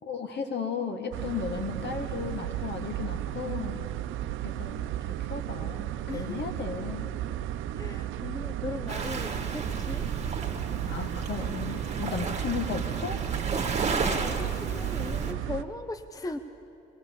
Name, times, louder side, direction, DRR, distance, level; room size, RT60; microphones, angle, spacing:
voice 1, 0.0-3.9 4.4-4.8 5.1-7.0 10.9-13.2, left 6 dB, 60° left, 5 dB, 1.9 m, -35 dB
sound 1, 1.1-15.6, right 12 dB, 90° right, 0.6 m, -34 dB
voice 2, 6.1-6.4 7.8-10.1 13.6-16.4, left 2 dB, 15° left, 9 dB, 0.7 m, -38 dB
Waves surf, 8.9-15.3, right 4 dB, 35° right, 1.8 m, -33 dB
22.0 x 17.0 x 7.1 m, 2.7 s
cardioid pair, 90°, 20 cm